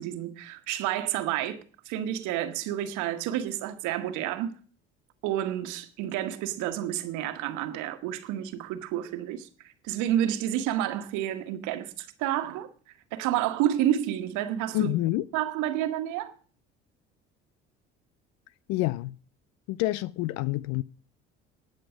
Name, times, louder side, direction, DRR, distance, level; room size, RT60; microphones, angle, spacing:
voice 1, 0.0-4.6 5.2-9.5 9.8-12.7 13.1-14.9 15.3-16.3, right 12 dB, 65° right, 1.4 m, -30 dB
voice 2, 14.7-15.2 18.7-19.2 19.7-20.8, left 17 dB, 60° left, 0.5 m, -27 dB
19.0 x 6.6 x 5.0 m
hypercardioid pair, 55°, 32 cm